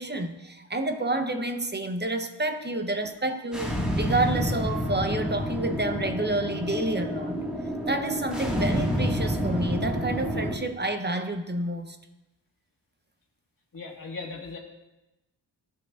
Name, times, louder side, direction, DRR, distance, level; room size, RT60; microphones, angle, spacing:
voice 1, 0.0-7.4 7.9-12.0, right 2 dB, 25° right, 7 dB, 0.7 m, -29 dB
sound 1, 3.5-10.6, equal, ahead, 1.7 m, -29 dB
voice 2, 13.7-14.6, left 3 dB, 50° left, 0 dB, 1.8 m, -38 dB
14.5 x 5.9 x 2.4 m, 1.0 s
cardioid pair, 65°, 43 cm